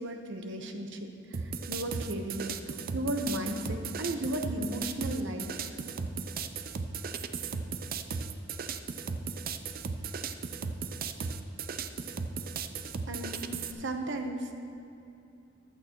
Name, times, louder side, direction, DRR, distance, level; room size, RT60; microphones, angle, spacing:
voice 1, 0.0-2.6 2.9-5.5 13.1-14.5, right 1 dB, 65° right, 4 dB, 1.1 m, -35 dB
sound 1, 1.3-13.7, right 5 dB, 50° right, 0.5 m, -36 dB
14.5 x 12.0 x 3.1 m, 2.7 s
head